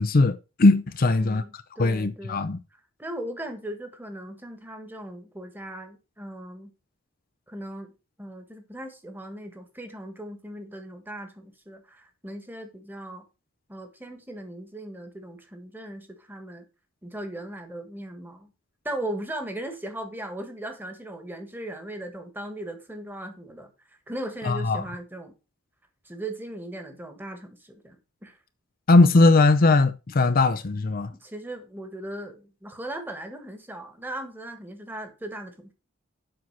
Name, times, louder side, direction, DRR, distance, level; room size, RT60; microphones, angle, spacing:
voice 1, 0.0-1.4 1.8-2.6 24.4-24.8 28.9-31.1, left 3 dB, 45° left, 0.6 m, -19 dB
voice 2, 1.0-2.5 3.0-6.7 7.5-7.9 8.2-13.2 13.7-16.7 17.0-18.5 18.8-23.7 24.1-25.3 26.0-28.4 31.2-35.7, right 1 dB, 10° right, 1.5 m, -38 dB
7.7 x 5.8 x 5.5 m
head